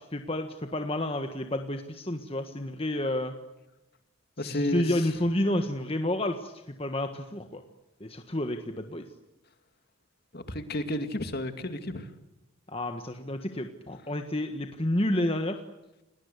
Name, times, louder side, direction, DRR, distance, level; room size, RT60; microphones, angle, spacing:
voice 1, 0.0-3.3 4.4-7.6 8.0-9.1 12.7-15.6, left 1 dB, 25° left, 6 dB, 1.6 m, -30 dB
voice 2, 4.4-5.1 10.3-12.1, left 1 dB, 45° left, 9 dB, 2.5 m, -32 dB
30.0 x 19.0 x 8.3 m, 0.94 s
head